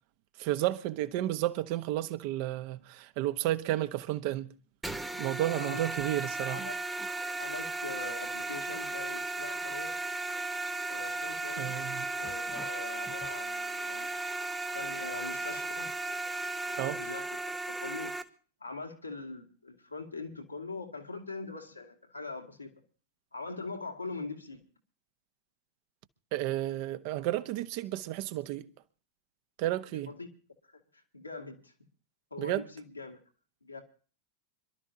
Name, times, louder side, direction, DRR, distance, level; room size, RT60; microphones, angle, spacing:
voice 1, 0.4-4.5 5.2-6.6 11.6-12.1 16.8-17.0 26.3-28.7 29.6-30.1 32.4-32.6, right 14 dB, 50° right, 1.2 m, -32 dB
sound 1, 4.8-18.2, right 2 dB, 5° right, 1.3 m, -35 dB
voice 2, 5.5-5.9 6.5-6.8 7.4-10.0 10.9-11.7 12.1-14.1 14.7-15.9 16.6-17.3 17.7-18.2 18.6-22.7 23.3-24.6 29.9-30.3 30.7-31.7 32.3-33.2 33.6-33.8, left 3 dB, 90° left, 2.6 m, -42 dB
26.5 x 12.5 x 2.9 m
figure-of-eight pair, 90°, 0 cm